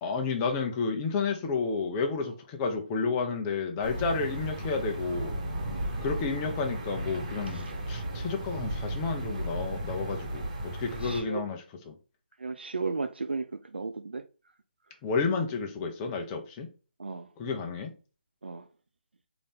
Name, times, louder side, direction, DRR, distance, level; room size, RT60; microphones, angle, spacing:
voice 1, 0.0-5.4 6.0-12.0 15.0-16.7 17.4-17.9, left 4 dB, 20° left, 0.6 m, -31 dB
sound 1, 3.8-11.2, right 1 dB, 40° right, 1.2 m, -35 dB
voice 2, 11.0-11.4 12.4-13.5 13.7-14.2 17.0-17.3 18.4-18.6, right 4 dB, 85° right, 0.3 m, -34 dB
3.9 x 2.7 x 3.5 m
figure-of-eight pair, 150°, 6 cm